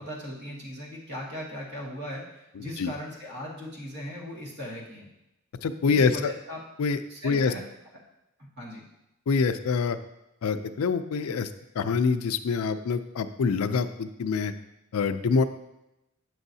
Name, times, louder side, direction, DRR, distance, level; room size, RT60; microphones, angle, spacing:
voice 1, 0.0-5.1 5.9-6.6 7.1-7.6 8.6-8.8, equal, 50° right, -4 dB, 1.9 m, -38 dB
voice 2, 2.6-2.9 5.6-6.3 6.8-7.5 9.3-10.0 10.4-11.5 11.7-14.5 14.9-15.4, left 5 dB, 75° left, 10 dB, 0.4 m, -25 dB
8.9 x 6.1 x 2.7 m, 0.90 s
head